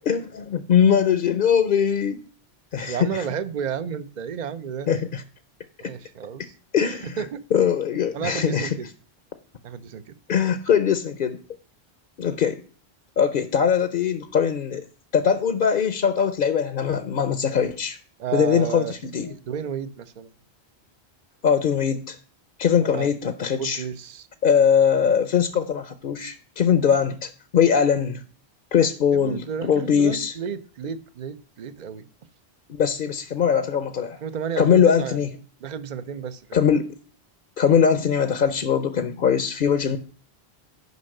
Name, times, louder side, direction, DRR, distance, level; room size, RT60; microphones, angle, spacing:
voice 1, 0.1-2.2 2.7-3.2 4.9-5.2 5.8-5.9 6.7-7.2 7.5-8.7 10.3-11.4 12.2-12.6 13.2-14.8 15.1-18.0 18.3-18.8 19.1-19.3 21.4-22.2 22.6-23.8 24.4-28.2 28.7-30.3 32.7-34.2 34.6-35.3 36.5-36.9 37.6-40.0, left 7 dB, 55° left, 0.8 m, -21 dB
voice 2, 2.9-4.9 5.8-6.5 6.9-7.4 8.1-8.9 9.6-10.2 18.2-20.3 22.8-23.1 23.6-24.3 25.0-25.1 29.1-32.1 34.2-35.2 35.6-36.6, right 7 dB, 50° right, 0.7 m, -32 dB
9.6 x 5.4 x 6.5 m
omnidirectional pair, 1.1 m